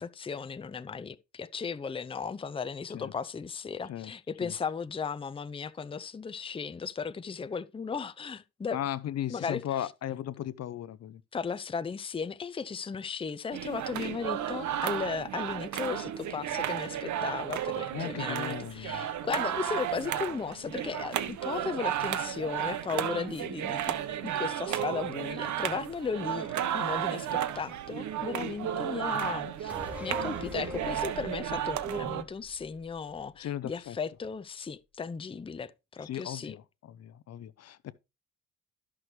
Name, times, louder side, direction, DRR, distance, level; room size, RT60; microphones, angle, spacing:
voice 1, 0.0-8.8 9.3-9.6 11.3-24.0 24.2-26.5 26.7-29.7 30.0-36.5, left 5 dB, 20° left, 0.6 m, -36 dB
voice 2, 8.7-11.2 17.9-19.1 33.4-34.0 36.0-37.9, left 11 dB, 55° left, 0.6 m, -36 dB
sound 1, 13.5-32.2, right 10 dB, 70° right, 1.0 m, -33 dB
sound 2, 29.7-33.3 33.6-33.7, left 2 dB, 5° right, 4.3 m, -43 dB
13.0 x 6.1 x 3.2 m
cardioid pair, 90°, 30 cm